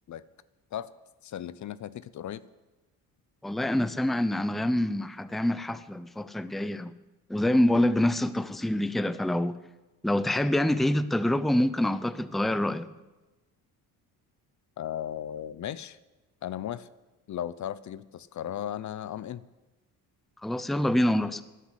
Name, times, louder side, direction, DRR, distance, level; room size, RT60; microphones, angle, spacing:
voice 1, 1.2-2.4 14.8-16.0 16.4-16.9 17.3-19.4, left 10 dB, 50° left, 0.7 m, -36 dB
voice 2, 3.4-6.9 7.3-9.6 10.0-12.9 20.4-21.4, left 1 dB, ahead, 0.6 m, -26 dB
12.5 x 10.0 x 9.9 m
cardioid pair, 100°, 37 cm